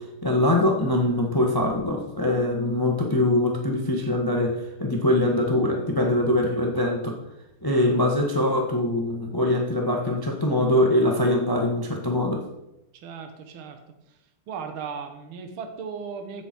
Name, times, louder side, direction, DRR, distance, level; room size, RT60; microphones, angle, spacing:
voice 1, 0.0-7.2 7.6-12.4, left 1 dB, 15° left, 1 dB, 1.0 m, -23 dB
voice 2, 13.0-13.8 14.5-16.5, right 6 dB, 75° right, 6 dB, 1.9 m, -36 dB
16.0 x 7.0 x 4.5 m, 0.90 s
omnidirectional pair, 2.3 m